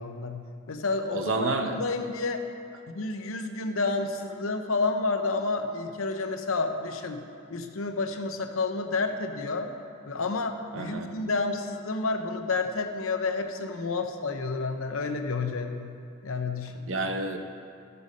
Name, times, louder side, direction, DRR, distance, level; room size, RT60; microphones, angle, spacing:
voice 1, 0.0-1.3 1.6-2.4 2.9-7.2 7.5-9.7 10.0-15.9 16.2-16.9, left 3 dB, 85° left, 6 dB, 0.8 m, -30 dB
voice 2, 1.1-1.8 10.7-11.1 16.9-17.4, right 2 dB, 70° right, 5 dB, 0.8 m, -29 dB
12.5 x 6.9 x 5.3 m, 2.4 s
head